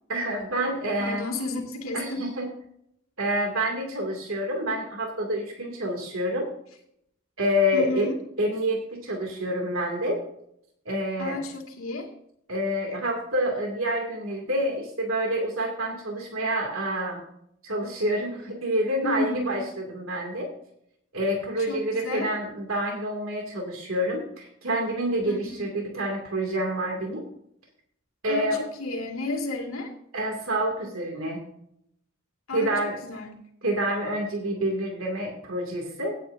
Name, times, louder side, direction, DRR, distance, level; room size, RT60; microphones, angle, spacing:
voice 1, 0.1-1.2 1.9-2.5 3.2-6.5 7.4-8.1 8.4-10.2 10.9-11.4 12.5-17.2 17.6-20.5 21.1-27.2 28.2-28.6 30.1-31.4 32.5-33.0 33.6-36.2, equal, 85° right, 1 dB, 2.5 m, -27 dB
voice 2, 1.0-2.2 7.7-8.2 11.2-12.1 19.0-19.5 21.7-22.3 25.2-25.6 28.3-29.9 32.5-33.3, left 2 dB, 90° left, 2 dB, 2.4 m, -32 dB
17.0 x 9.1 x 2.7 m, 0.72 s
head